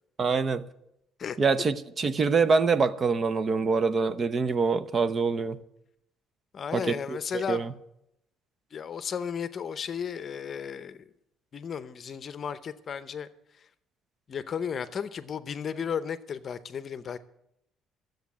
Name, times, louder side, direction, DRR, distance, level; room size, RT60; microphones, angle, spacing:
voice 1, 0.2-0.6 1.4-5.6 6.7-7.7, right 4 dB, 30° right, 0.6 m, -25 dB
voice 2, 6.5-7.6 8.7-11.0 11.5-13.3 14.3-17.2, left 7 dB, 40° left, 0.7 m, -34 dB
12.5 x 8.0 x 8.4 m
cardioid pair, 130°, 0 cm